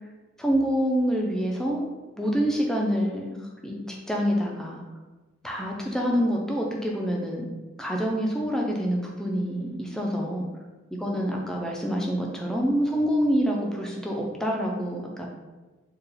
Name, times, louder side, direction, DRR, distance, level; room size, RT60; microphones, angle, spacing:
voice 1, 0.4-1.9 2.2-3.3 3.6-4.8 5.4-7.4 7.8-10.5 11.0-15.3, equal, 5° left, -1 dB, 0.4 m, -26 dB
4.7 x 2.3 x 3.2 m, 1.2 s
head